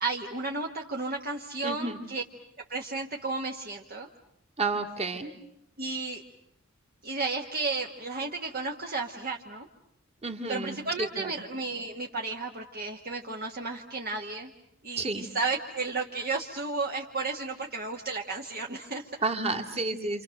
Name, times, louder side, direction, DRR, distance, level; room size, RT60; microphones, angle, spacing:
voice 1, 0.0-2.2 2.7-4.1 5.8-6.2 7.0-9.7 10.5-14.5 14.8-19.1, right 3 dB, 50° right, 0 dB, 1.5 m, -33 dB
voice 2, 1.6-2.0 4.6-5.3 10.2-10.8 11.2-11.3 15.0-15.2 19.2-20.2, right 3 dB, 30° right, 4 dB, 2.1 m, -30 dB
28.5 x 27.5 x 6.5 m, 0.77 s
head